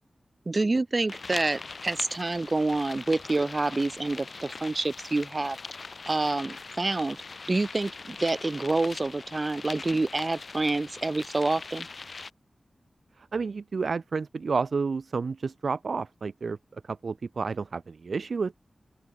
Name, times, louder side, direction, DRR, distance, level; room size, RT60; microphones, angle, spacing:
voice 1, 0.5-5.6 6.1-7.2 7.5-11.9, right 2 dB, 35° right, 1.4 m, -27 dB
sound 1, 1.1-12.3, left 4 dB, 55° left, 3.1 m, -41 dB
voice 2, 13.2-16.6 16.8-18.6, right 4 dB, 70° right, 0.4 m, -30 dB
open air
wide cardioid pair, 80°, 0 cm